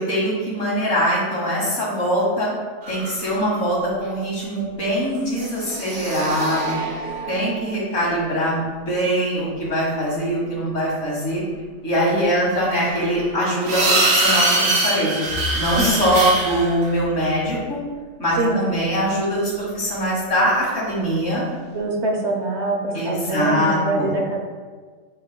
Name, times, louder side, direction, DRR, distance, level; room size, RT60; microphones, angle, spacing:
voice 1, 0.0-2.5 2.9-6.8 7.3-11.4 11.8-17.8 18.2-21.4 22.9-24.1, equal, 70° left, -5 dB, 2.3 m, -22 dB
sound 1, 2.8-3.5 5.3-8.2 12.6-16.9 20.6-20.7, right 2 dB, 85° right, 1.4 m, -24 dB
voice 2, 18.4-18.7 21.7-24.4, right 2 dB, 60° right, 0 dB, 1.2 m, -24 dB
7.9 x 5.4 x 2.3 m, 1.5 s
omnidirectional pair, 1.3 m